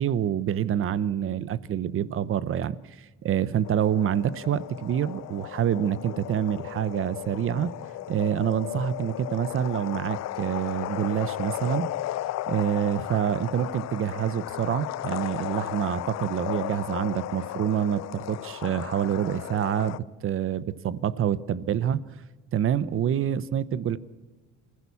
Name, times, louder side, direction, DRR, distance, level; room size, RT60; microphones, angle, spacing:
voice 1, 0.0-7.7 8.1-11.9 12.5-20.0 20.2-22.0 22.5-24.0, right 9 dB, 45° right, 17 dB, 0.9 m, -27 dB
sound 1, 3.6-20.0, left 14 dB, 60° left, 0.6 m, -35 dB
26.0 x 16.0 x 7.1 m, 1.3 s
cardioid pair, 135°, 31 cm